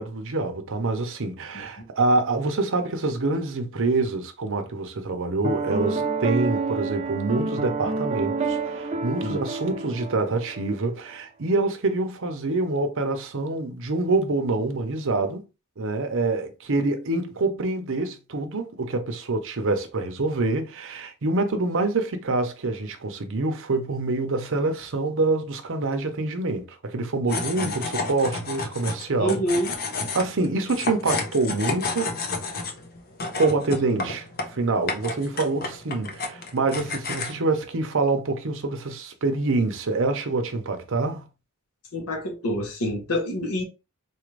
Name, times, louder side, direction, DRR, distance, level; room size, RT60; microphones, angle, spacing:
voice 1, 0.0-15.4 15.8-29.4 30.1-32.1 33.3-41.2, right 3 dB, 60° right, 0.7 m, -26 dB
voice 2, 1.5-1.9 9.2-9.4 27.5-27.7 29.2-29.7 41.9-43.6, equal, 80° left, 1.1 m, -27 dB
Piano, 5.4-10.7, right 3 dB, 30° right, 0.5 m, -28 dB
sound 1, 27.3-37.4, left 3 dB, 45° left, 0.7 m, -31 dB
4.0 x 2.5 x 3.2 m
head